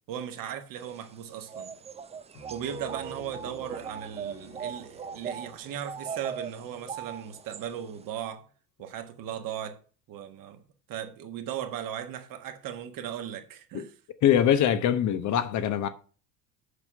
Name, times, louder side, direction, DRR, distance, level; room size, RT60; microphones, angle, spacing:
voice 1, 0.1-1.7 2.5-8.4 8.8-9.8 10.1-10.6 10.9-13.9, right 9 dB, 45° right, 1.6 m, -37 dB
sound 1, 0.8-8.1, right 7 dB, 15° right, 0.5 m, -40 dB
Piano, 2.3-7.9, left 2 dB, 80° left, 2.6 m, -53 dB
voice 2, 14.2-15.9, left 10 dB, 35° left, 0.9 m, -23 dB
8.5 x 6.0 x 5.5 m
figure-of-eight pair, 65°, 48 cm